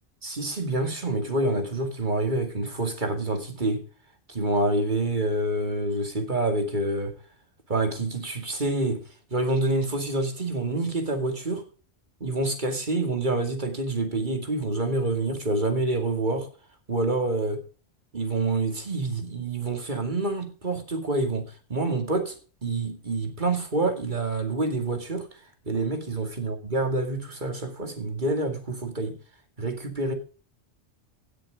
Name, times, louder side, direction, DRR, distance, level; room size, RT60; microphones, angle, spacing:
voice 1, 0.2-3.8 4.3-7.1 7.7-9.0 9.3-11.6 12.2-16.5 16.9-17.6 18.1-21.4 21.7-25.4 25.6-29.2 29.6-30.1, right 2 dB, 45° right, 2.5 m, -27 dB
17.0 x 6.8 x 5.0 m
omnidirectional pair, 1.1 m